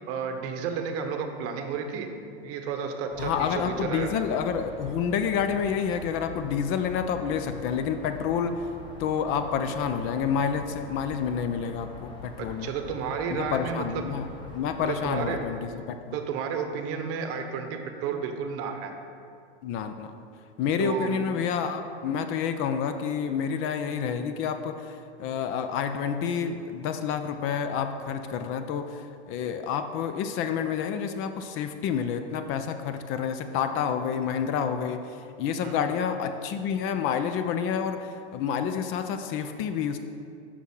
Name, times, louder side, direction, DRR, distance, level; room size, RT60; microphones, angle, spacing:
voice 1, 0.0-2.1 2.4-4.1 12.4-14.0 14.8-15.4 16.1-18.9 20.8-21.2 35.6-35.7, right 6 dB, 45° right, 6 dB, 0.9 m, -32 dB
sound 1, 3.1-15.4, left 2 dB, 15° left, 1.3 m, -44 dB
voice 2, 3.2-8.7 9.0-12.7 13.3-14.3 14.5-16.2 19.6-20.1 20.6-40.0, left 7 dB, 40° left, 8 dB, 0.5 m, -29 dB
6.2 x 5.9 x 5.4 m, 2.5 s
hypercardioid pair, 105°, 33 cm